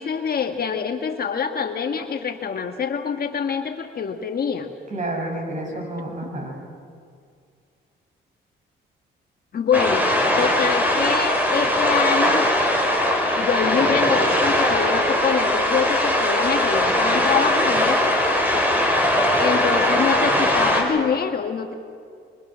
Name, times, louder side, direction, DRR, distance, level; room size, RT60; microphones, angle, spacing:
voice 1, 0.0-4.7 6.2-6.3 9.5-12.5 13.4-18.0 19.1-21.7, left 6 dB, 50° left, 5 dB, 1.7 m, -25 dB
voice 2, 4.9-6.5, right 1 dB, 35° right, 0 dB, 7.9 m, -29 dB
sound 1, 9.7-20.8, left 1 dB, 10° right, 5.3 m, -20 dB
27.0 x 24.5 x 6.3 m, 2.2 s
cardioid pair, 90°, 20 cm